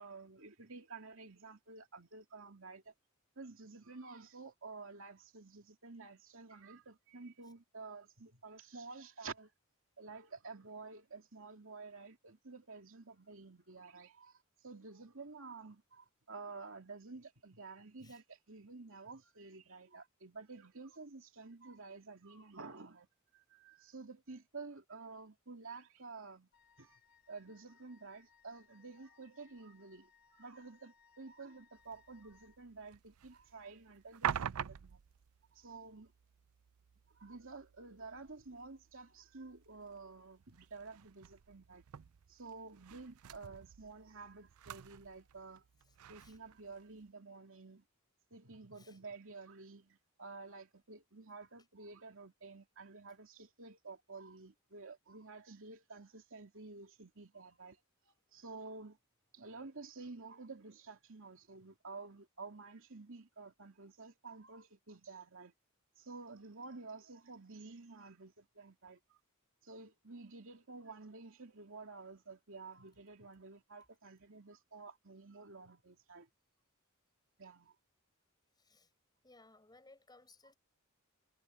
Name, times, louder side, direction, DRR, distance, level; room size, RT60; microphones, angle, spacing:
voice 1, 0.0-2.9 3.4-9.5 10.0-23.1 23.3-26.5 26.8-27.0 27.3-35.0 35.5-36.1 37.1-41.8 42.3-45.6 46.1-47.8 48.3-57.8 58.0-59.0 59.3-65.5 66.0-69.2 69.6-76.3 77.4-77.7, right 3 dB, 65° right, 2.9 m, -51 dB
Wind instrument woodwind instrument, 26.5-32.6, left 6 dB, 55° left, 4.8 m, -68 dB
sound 1, 31.8-47.1, right 9 dB, 85° right, 0.4 m, -47 dB
voice 2, 78.6-78.9 79.2-80.5, left 2 dB, 20° left, 6.1 m, -62 dB
head